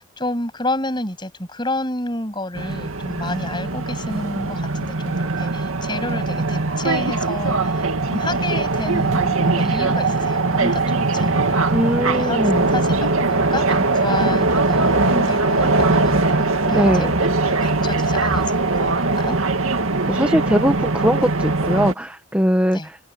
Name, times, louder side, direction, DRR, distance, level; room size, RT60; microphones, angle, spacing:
voice 1, 0.0-11.7 12.2-12.4 12.7-19.4 22.7-22.9, left 2 dB, 20° left, 7.9 m, -30 dB
sound 1, 2.5-21.9, right 3 dB, 70° right, 2.2 m, -20 dB
voice 2, 11.7-12.7 16.7-17.2 20.1-23.0, equal, 5° right, 1.3 m, -20 dB
open air
head